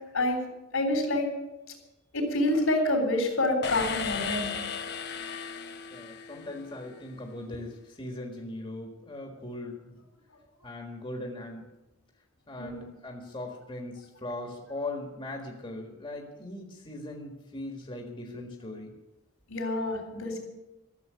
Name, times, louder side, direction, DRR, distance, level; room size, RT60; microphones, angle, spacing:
voice 1, 0.7-1.3 2.1-4.5 12.6-12.8 19.5-20.4, left 1 dB, 80° left, 3 dB, 3.8 m, -27 dB
sound 1, 3.6-6.8, left 6 dB, 50° left, 1.1 m, -35 dB
voice 2, 5.9-10.0 10.6-11.7 12.5-18.9, left 2 dB, 25° left, 1 dB, 1.7 m, -39 dB
13.0 x 7.8 x 9.5 m, 1.0 s
head